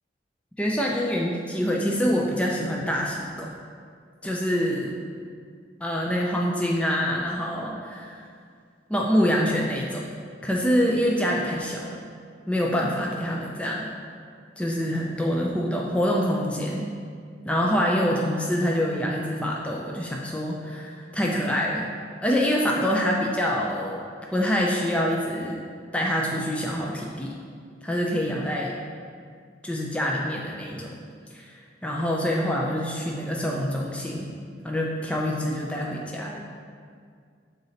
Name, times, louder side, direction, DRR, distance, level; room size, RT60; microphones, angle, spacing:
voice 1, 0.6-3.5 4.2-4.9 5.8-8.3 8.9-10.0 10.4-12.0 12.5-13.9 14.6-16.9 17.5-21.9 22.2-24.0 24.3-25.6 25.9-27.3 27.8-28.8 29.6-31.0 31.3-34.3 34.6-36.4, equal, 5° left, -2 dB, 0.4 m, -26 dB
6.6 x 3.9 x 4.1 m, 2.1 s
head